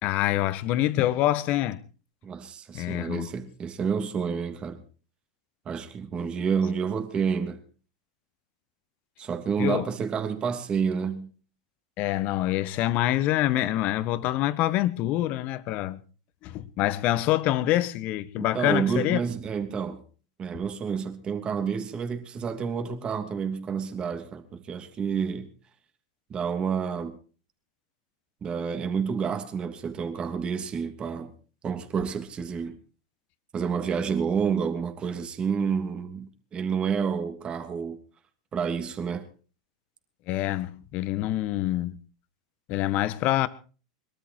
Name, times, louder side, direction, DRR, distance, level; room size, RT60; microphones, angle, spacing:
voice 1, 0.0-1.8 2.7-3.3 9.6-9.9 12.0-16.0 16.4-19.2 40.3-42.0 42.7-43.5, left 14 dB, 50° left, 1.4 m, -26 dB
voice 2, 2.2-4.8 5.6-7.6 9.2-11.3 18.4-20.0 20.4-25.5 26.3-27.2 28.4-31.3 31.6-32.8 33.5-38.0 38.5-39.3, right 6 dB, 30° right, 2.9 m, -29 dB
22.5 x 12.5 x 4.7 m
hypercardioid pair, 105°, 3 cm